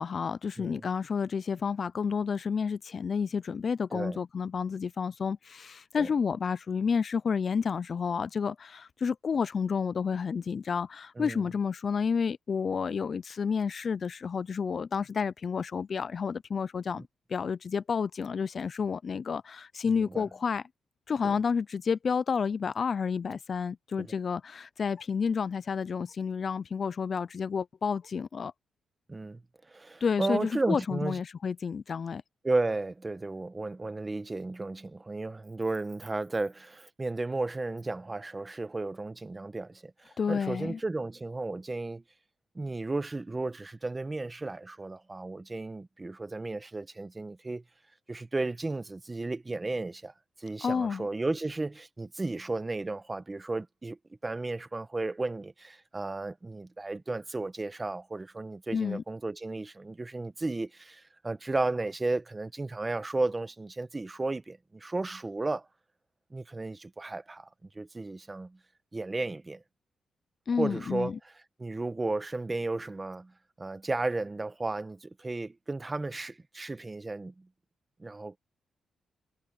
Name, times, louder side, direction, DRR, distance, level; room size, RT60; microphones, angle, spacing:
voice 1, 0.0-17.0 17.3-20.6 21.1-28.5 30.0-32.2 40.2-40.8 50.6-51.1 58.7-59.0 70.5-71.1, left 6 dB, 40° left, 0.3 m, -30 dB
voice 2, 0.6-0.9 3.9-4.2 6.0-6.1 11.2-11.5 16.9-17.0 19.9-20.3 21.2-21.3 24.0-24.1 29.1-29.4 29.7-31.2 32.4-42.0 42.5-47.6 48.1-50.1 50.4-54.0 54.2-65.7 66.3-67.5 67.7-68.6 68.9-69.6 70.6-71.1 71.6-77.5 78.0-78.3, right 2 dB, 20° right, 1.0 m, -34 dB
cardioid pair, 140°, 0 cm